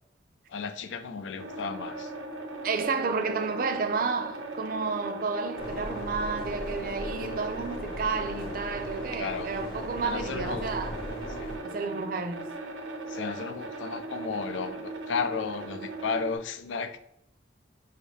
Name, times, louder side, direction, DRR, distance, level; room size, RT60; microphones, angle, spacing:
voice 1, 0.5-2.1 9.1-9.5 10.0-10.7 11.4-11.6 13.1-17.0, left 5 dB, 85° left, 0.4 m, -34 dB
sound 1, 1.4-16.4, right 2 dB, 90° right, 0.7 m, -39 dB
voice 2, 2.6-11.0 11.6-12.5, right 4 dB, 50° right, 0.4 m, -31 dB
sound 2, 5.6-11.6, equal, 50° left, 0.8 m, -38 dB
5.3 x 2.8 x 3.2 m
head